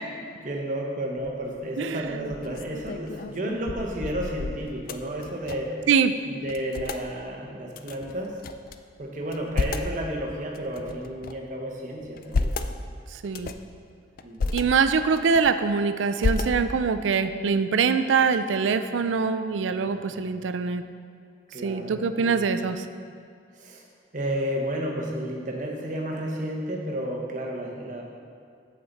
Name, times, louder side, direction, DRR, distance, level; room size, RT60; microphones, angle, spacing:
voice 1, 0.4-5.8 6.2-8.4 9.0-12.5 14.2-14.7 19.9-20.3 21.5-22.4 23.5-23.8 24.1-28.0, right 1 dB, 45° right, -1 dB, 1.2 m, -32 dB
sound 1, 1.2-1.6 2.1-5.8 6.1-6.2 6.4-7.0 7.7-8.8 9.2-10.0 10.5-11.5 12.0-12.7 13.2-13.7 14.2-14.6 15.1-15.7 16.2-16.9, left 3 dB, 50° left, 0.4 m, -31 dB
voice 2, 1.8-2.3 5.9-6.1 13.2-13.5 14.5-20.8 21.6-22.8, right 5 dB, 85° right, 10 dB, 0.4 m, -24 dB
8.6 x 7.6 x 4.1 m, 2.3 s
head